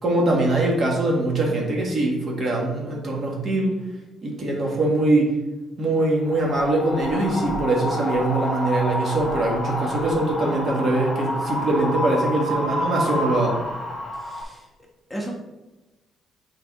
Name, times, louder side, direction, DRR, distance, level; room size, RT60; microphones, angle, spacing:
voice 1, 0.0-3.7 4.2-5.3 5.8-13.5, right 2 dB, 50° right, -1 dB, 1.7 m, -22 dB
Wind, 6.3-14.4, left 1 dB, 45° left, 1.2 m, -28 dB
voice 2, 14.1-14.7 15.1-15.3, right 1 dB, 10° left, -1 dB, 1.2 m, -36 dB
6.0 x 3.9 x 4.1 m, 1.1 s
cardioid pair, 90°, 0 cm